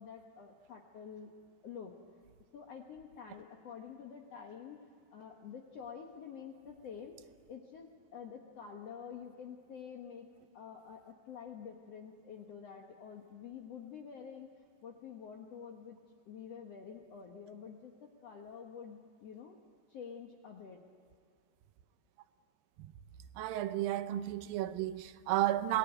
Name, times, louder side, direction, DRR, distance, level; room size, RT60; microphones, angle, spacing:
voice 1, 0.0-1.3 1.6-2.0 2.5-4.8 5.1-10.3 10.5-14.5 14.8-16.0 16.3-19.6 19.9-20.8, left 7 dB, 55° left, 2.1 m, -48 dB
voice 2, 23.4-25.8, right 13 dB, 80° right, 2.6 m, -33 dB
27.0 x 19.0 x 9.2 m
omnidirectional pair, 4.0 m